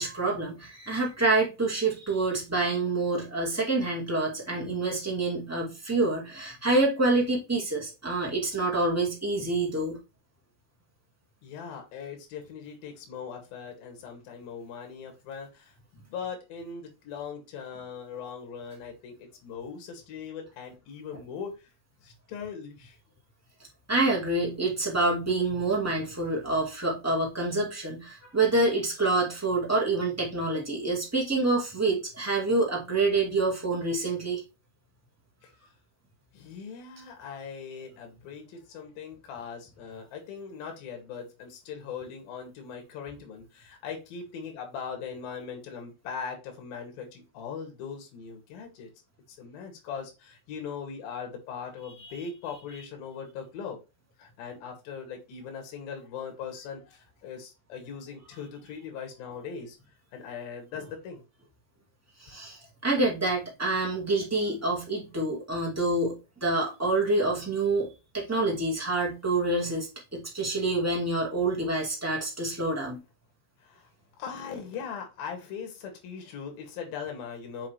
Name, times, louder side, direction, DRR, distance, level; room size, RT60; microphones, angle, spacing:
voice 1, 0.0-10.0 23.9-34.4 52.0-52.1 62.2-66.1 66.4-67.9 68.1-73.0, right 2 dB, 15° right, 0.5 m, -27 dB
voice 2, 11.4-21.7 22.0-23.0 35.4-35.5 36.3-48.9 49.3-53.8 54.2-59.8 60.1-61.2 62.4-62.5 73.6-73.9 74.2-77.7, left 6 dB, 65° left, 3.5 m, -40 dB
7.4 x 4.9 x 3.1 m
omnidirectional pair, 4.9 m